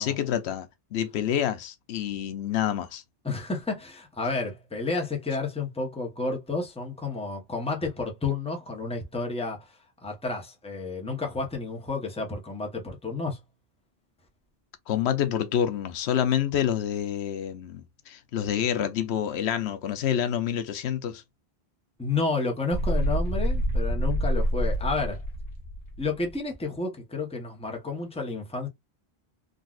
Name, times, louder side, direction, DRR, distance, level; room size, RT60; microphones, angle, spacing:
voice 1, 0.0-3.0 14.9-21.2, left 9 dB, 90° left, 0.9 m, -28 dB
voice 2, 3.2-13.4 22.0-25.2 26.0-28.7, left 3 dB, 5° left, 0.7 m, -31 dB
sound 1, 22.7-26.3, equal, 45° left, 1.3 m, -27 dB
3.7 x 2.3 x 2.3 m
omnidirectional pair, 1.1 m